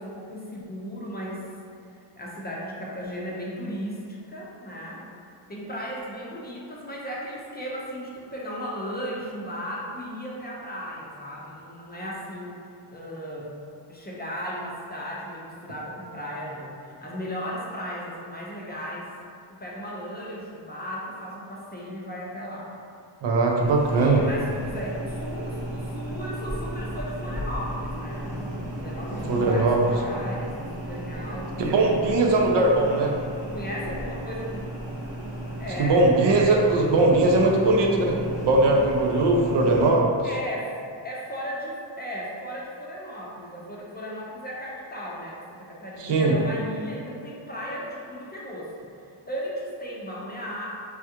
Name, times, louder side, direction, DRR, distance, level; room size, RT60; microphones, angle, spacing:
voice 1, 0.0-1.5 1.9-5.0 5.5-12.6 12.9-13.5 13.9-19.1 19.6-22.7 23.9-28.4 28.8-32.1 32.4-33.1 33.5-34.6 35.6-36.4 37.4-37.8 40.2-40.8 41.0-48.7 49.3-50.7, equal, 20° left, -5 dB, 0.5 m, -36 dB
voice 2, 23.2-24.2 29.3-29.8 31.6-33.1 35.8-38.2 38.4-40.3 46.0-46.3, right 2 dB, 65° right, 0 dB, 0.6 m, -20 dB
sound 1, 23.6-39.9, right 1 dB, 85° right, 1.1 m, -34 dB
3.5 x 2.3 x 2.8 m, 2.4 s
cardioid pair, 90°, 46 cm